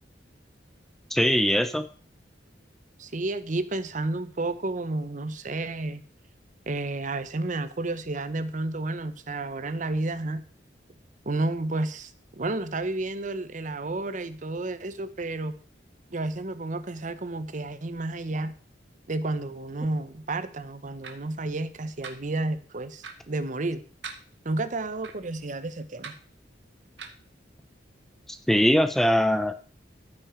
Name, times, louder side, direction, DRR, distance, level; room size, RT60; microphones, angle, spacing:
voice 1, 1.1-1.8 28.5-29.5, equal, ahead, 10 dB, 0.5 m, -21 dB
voice 2, 3.0-6.0 6.7-10.4 11.3-15.5 16.1-18.5 19.1-23.8 24.4-26.1, right 2 dB, 45° right, 13 dB, 0.8 m, -31 dB
sound 1, 21.0-21.1 22.0-22.1 23.0-23.2 24.0-24.2 25.0-25.1 26.0-26.2 27.0-27.2, right 5 dB, 70° right, 1.5 m, -39 dB
13.5 x 6.1 x 5.0 m, 0.43 s
head